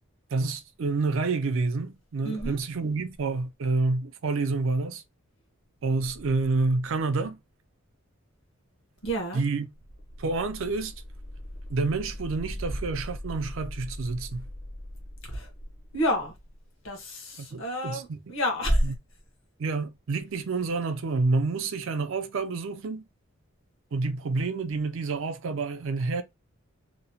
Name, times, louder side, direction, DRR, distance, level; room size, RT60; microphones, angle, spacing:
voice 1, 0.3-5.0 5.8-7.4 9.3-9.7 10.2-10.9 11.7-14.5 17.4-18.2 18.8-18.9 19.6-23.0 23.9-26.2, right 3 dB, 60° right, 0.4 m, -28 dB
voice 2, 2.2-2.6 9.0-9.4 15.3-15.5 15.9-16.3 16.8-18.9, equal, 60° left, 1.0 m, -28 dB
sound 1, 9.9-16.6, left 1 dB, 40° left, 0.5 m, -41 dB
2.9 x 2.1 x 2.7 m
head